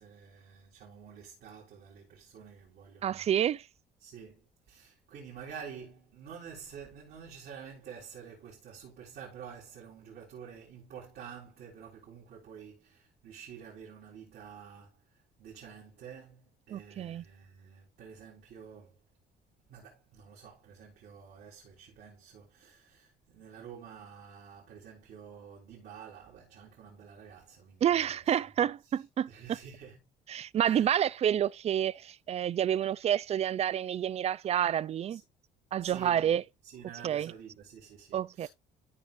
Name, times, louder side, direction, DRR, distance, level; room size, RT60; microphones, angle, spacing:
voice 1, 0.0-3.3 4.0-19.0 19.7-30.0 30.6-31.0 35.1-35.2 35.8-38.5, right 7 dB, 70° right, 4.2 m, -49 dB
voice 2, 3.0-3.6 16.7-17.2 27.8-29.3 30.3-35.2 35.7-36.4 37.0-37.3 38.1-38.5, right 10 dB, 40° right, 0.4 m, -29 dB
14.0 x 5.2 x 2.6 m
cardioid pair, 110°, 17 cm